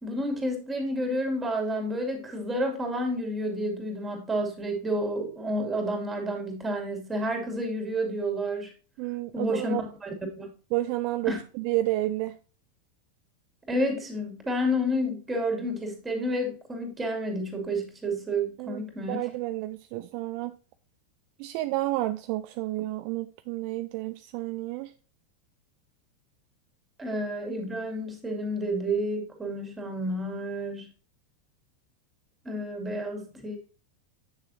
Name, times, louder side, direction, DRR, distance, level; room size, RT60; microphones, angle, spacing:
voice 1, 0.0-8.7 9.3-9.7 10.0-10.5 11.3-11.4 13.7-19.2 27.0-30.9 32.4-33.6, equal, 15° right, 2.7 m, -30 dB
voice 2, 9.0-9.8 10.7-12.4 18.6-20.5 21.4-24.9, right 16 dB, 50° right, 0.4 m, -30 dB
8.0 x 6.6 x 2.7 m
figure-of-eight pair, 90°, 0 cm